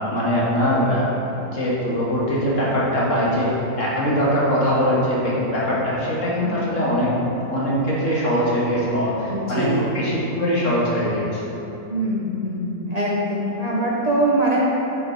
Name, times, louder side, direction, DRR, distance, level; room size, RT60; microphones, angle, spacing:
voice 1, 0.1-7.2 7.5-9.7 9.9-11.4, equal, 55° left, -6 dB, 1.8 m, -22 dB
voice 2, 9.3-9.9 11.9-14.6, right 1 dB, 45° right, -4 dB, 0.5 m, -23 dB
6.8 x 5.6 x 4.4 m, 3.0 s
omnidirectional pair, 1.6 m